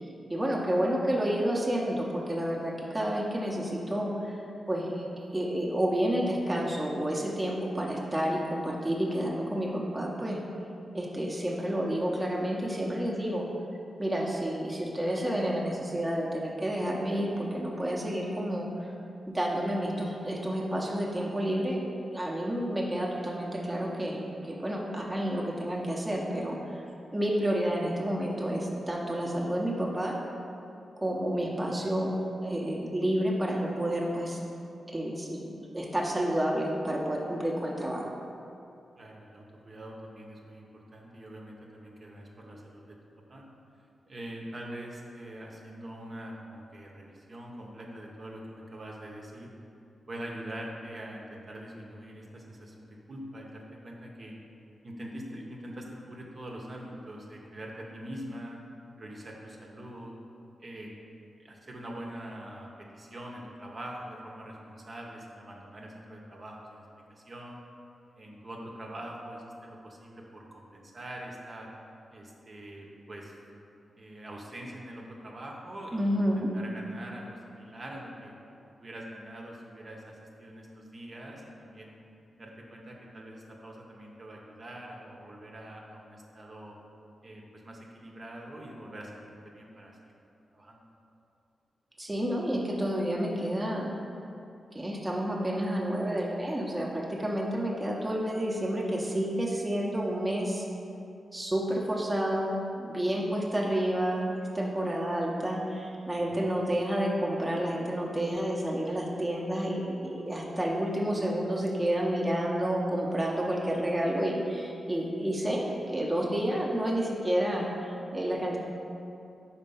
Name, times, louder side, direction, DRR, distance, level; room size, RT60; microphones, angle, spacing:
voice 1, 0.3-4.4 4.7-5.0 5.3-10.4 10.9-13.4 14.0-18.9 19.3-26.8 27.1-30.2 31.0-32.1 32.4-34.4 34.9-38.1 75.9-76.5 92.0-93.9 94.7-100.6 101.3-118.6, right 1 dB, 15° right, -3 dB, 0.8 m, -30 dB
voice 2, 39.0-43.0 43.3-43.4 44.0-49.5 50.1-54.4 54.8-58.6 59.0-60.1 60.6-60.9 61.4-67.6 68.2-71.7 72.1-73.4 74.0-78.3 78.8-81.9 82.4-86.8 87.2-89.1 89.4-90.1 90.5-90.8 106.3-106.4, right 1 dB, 45° right, -1 dB, 0.8 m, -44 dB
4.4 x 4.3 x 5.5 m, 2.7 s
cardioid pair, 70°, 0 cm